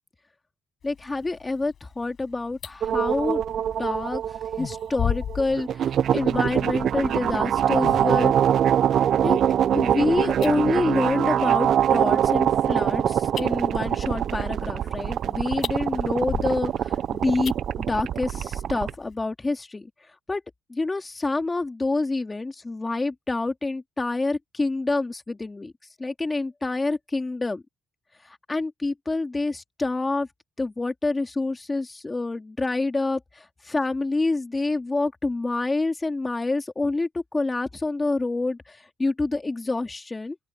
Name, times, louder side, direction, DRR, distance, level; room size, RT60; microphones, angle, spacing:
sound 1, 0.8-19.1, left 8 dB, 60° left, 6.3 m, -39 dB
voice 1, 0.8-3.4 3.8-4.2 4.6-8.3 9.2-9.4 9.7-19.9 20.3-20.4 20.7-25.7 26.0-27.6 28.2-30.3 30.6-40.4, left 3 dB, 20° left, 2.7 m, -27 dB
sound 2, 2.8-18.9, right 9 dB, 65° right, 0.5 m, -24 dB
open air
cardioid pair, 90°, 0 cm